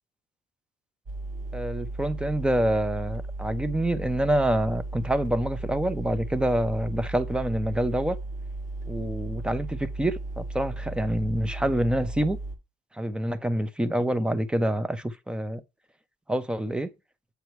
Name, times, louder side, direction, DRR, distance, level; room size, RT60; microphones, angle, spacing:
sound 1, 1.1-12.6, right 2 dB, 45° right, 1.5 m, -35 dB
voice 1, 1.5-8.2 8.9-12.4 12.9-15.6 16.3-16.9, right 1 dB, 5° right, 0.8 m, -27 dB
8.2 x 3.0 x 4.7 m
cardioid pair, 110°, 17 cm